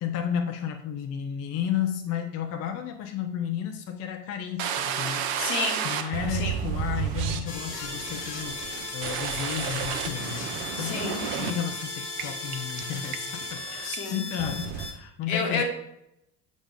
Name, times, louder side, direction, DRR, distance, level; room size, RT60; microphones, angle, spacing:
voice 1, 0.0-5.3 5.8-10.5 10.8-15.6, left 9 dB, 35° left, 5 dB, 0.6 m, -32 dB
sound 1, 4.6-11.7 12.2-12.3 12.5-12.8 13.1-13.6 13.9-14.0 14.4-14.9, right 8 dB, 50° right, 0.8 m, -31 dB
voice 2, 5.4-5.8 6.3-6.6 10.8-11.2 13.8-14.2 15.3-15.6, left 4 dB, 65° left, 2 dB, 1.4 m, -30 dB
sound 2, 7.5-14.9, left 2 dB, 80° left, 1.0 m, -36 dB
6.9 x 4.1 x 3.5 m, 0.79 s
figure-of-eight pair, 60°, 47 cm